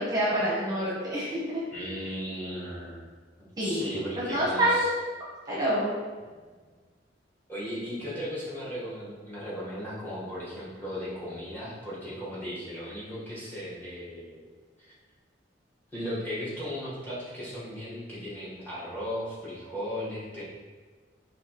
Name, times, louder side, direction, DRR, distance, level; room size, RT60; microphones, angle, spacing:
voice 1, 0.0-1.6 3.6-4.9 5.5-5.9, right 1 dB, 20° right, -7 dB, 0.9 m, -27 dB
voice 2, 1.7-3.0 3.4-4.9 6.4-6.5 7.5-14.5 14.8-14.9 15.9-20.4, equal, 10° left, -8 dB, 1.2 m, -36 dB
5.6 x 2.7 x 2.9 m, 1.4 s
head